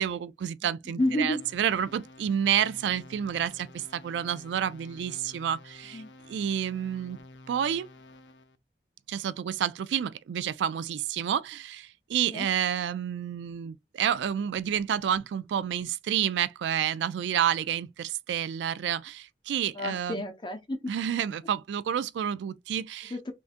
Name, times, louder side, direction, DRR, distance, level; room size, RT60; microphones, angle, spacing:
voice 1, 0.0-6.0 6.3-7.2 7.5-7.9 9.1-20.2 20.9-23.1, right 9 dB, 80° right, 0.3 m, -29 dB
voice 2, 0.6-1.5 5.9-6.1 12.3-12.5 19.7-20.9 23.0-23.3, left 1 dB, 25° left, 0.6 m, -31 dB
sound 1, 1.0-8.6, left 2 dB, 85° left, 0.4 m, -51 dB
3.6 x 2.5 x 2.5 m
head